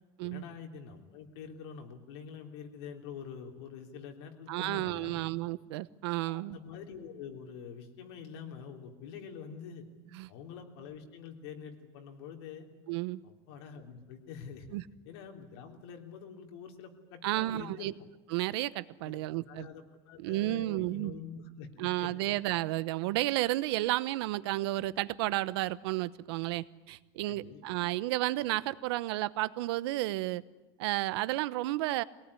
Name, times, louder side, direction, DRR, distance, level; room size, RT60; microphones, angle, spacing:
voice 1, 0.2-5.2 6.2-9.8 10.3-12.7 13.2-14.7 15.0-17.9 19.0-22.1 27.2-27.6, left 7 dB, 80° left, 4 dB, 3.5 m, -46 dB
voice 2, 4.5-6.6 10.1-10.3 12.9-13.2 14.7-14.8 17.2-17.9 18.3-19.7 20.2-21.1 21.8-30.4 30.8-32.0, right 17 dB, 90° right, 17 dB, 0.9 m, -32 dB
23.0 x 18.5 x 9.9 m, 1.2 s
cardioid pair, 175°, 13 cm